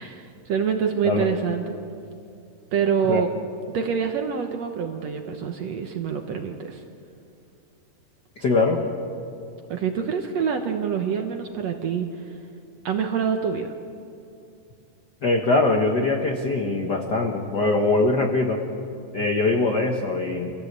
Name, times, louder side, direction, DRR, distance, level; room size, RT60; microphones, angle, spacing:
voice 1, 0.0-1.7 2.7-3.3 3.7-6.8 9.7-12.3 12.9-13.7, right 7 dB, 65° right, 5 dB, 1.8 m, -26 dB
voice 2, 8.4-8.8 15.2-18.6 19.1-20.5, left 3 dB, 65° left, 2 dB, 1.0 m, -22 dB
27.0 x 16.5 x 8.2 m, 2.6 s
omnidirectional pair, 4.1 m